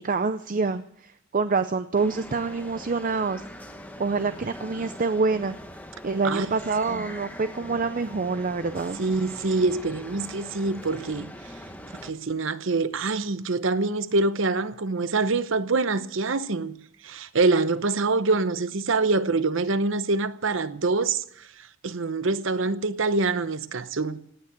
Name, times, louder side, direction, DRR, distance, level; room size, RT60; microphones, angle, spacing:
voice 1, 0.0-3.4 4.0-5.6 6.0-9.0, right 4 dB, 40° right, 0.5 m, -26 dB
sound 1, 1.9-12.1, left 1 dB, 5° left, 1.2 m, -42 dB
voice 2, 9.0-11.3 12.0-16.8 17.0-21.2 21.8-24.2, right 3 dB, 60° right, 0.8 m, -25 dB
18.0 x 9.4 x 8.2 m
head